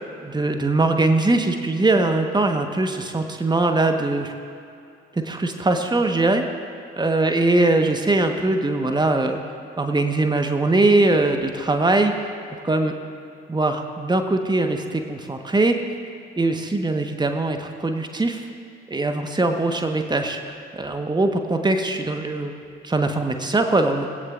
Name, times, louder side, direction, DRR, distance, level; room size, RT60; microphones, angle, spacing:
voice 1, 0.2-4.3 5.1-6.4 7.0-9.4 9.8-12.1 12.6-13.0 13.5-15.7 16.4-18.4 18.9-20.4 20.7-22.5 22.8-24.1, right 2 dB, 15° right, 5 dB, 1.4 m, -21 dB
21.5 x 16.0 x 2.6 m, 2.5 s
figure-of-eight pair, 45°, 29 cm